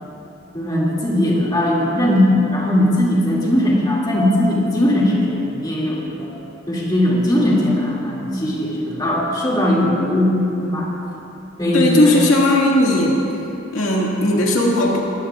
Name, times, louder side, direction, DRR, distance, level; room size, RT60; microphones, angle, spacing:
voice 1, 0.5-6.3 6.7-10.9 11.6-12.2, left 1 dB, 20° left, -6 dB, 2.4 m, -19 dB
voice 2, 11.7-13.2 13.7-15.0, left 1 dB, 80° left, -3 dB, 2.1 m, -16 dB
21.0 x 15.5 x 2.5 m, 2.9 s
head